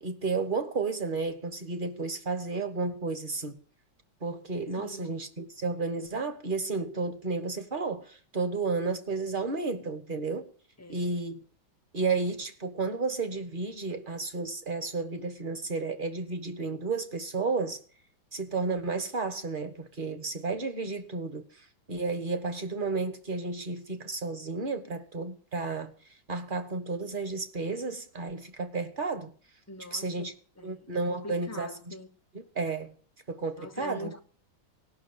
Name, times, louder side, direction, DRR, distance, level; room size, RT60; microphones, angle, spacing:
voice 1, 0.0-3.6 4.2-10.5 10.9-11.4 11.9-17.8 18.3-25.9 26.3-29.3 29.9-30.3 30.6-31.9 32.5-32.9 33.3-34.1, right 4 dB, 30° right, 1.2 m, -32 dB
voice 2, 4.8-5.1 10.8-11.2 29.7-32.1 33.6-34.2, left 2 dB, 10° left, 0.7 m, -43 dB
17.5 x 6.2 x 7.9 m
omnidirectional pair, 2.1 m